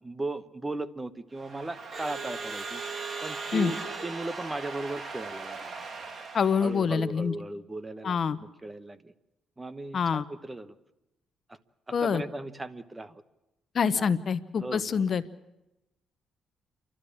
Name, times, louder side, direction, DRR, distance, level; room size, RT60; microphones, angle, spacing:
voice 1, 0.0-2.8 3.2-5.9 6.6-9.1 9.6-10.7 11.5-11.6 12.0-13.2 13.9-14.1 14.6-15.1, right 2 dB, 15° right, 13 dB, 1.1 m, -37 dB
Crowd / Alarm, 1.4-6.9, right 4 dB, 45° right, 2.6 m, -38 dB
voice 2, 6.3-7.3 8.0-8.4 9.9-10.2 11.9-12.2 13.7-15.2, left 6 dB, 50° left, 13 dB, 0.9 m, -26 dB
29.5 x 12.5 x 8.6 m, 0.95 s
cardioid pair, 90°, 0 cm